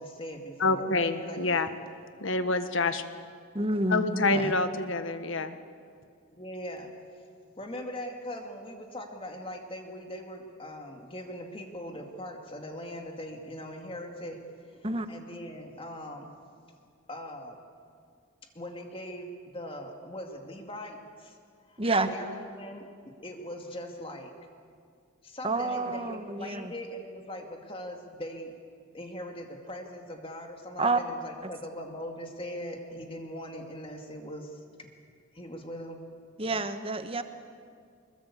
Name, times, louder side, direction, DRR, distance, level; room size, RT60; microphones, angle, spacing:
voice 1, 0.0-1.7 6.3-7.2 7.6-16.3 17.1-17.6 18.5-21.4 21.7-21.8 22.1-24.3 25.2-28.5 28.9-34.9 35.3-36.0, equal, 25° left, 3 dB, 2.2 m, -41 dB
voice 2, 0.6-1.7 2.2-3.0 3.9-5.6, left 3 dB, 65° left, 10 dB, 1.5 m, -27 dB
voice 3, 3.5-4.5 14.8-15.1 21.8-22.1 25.4-26.7 30.8-31.0 36.4-37.2, right 2 dB, 25° right, 9 dB, 1.2 m, -28 dB
25.5 x 21.5 x 8.5 m, 2.2 s
head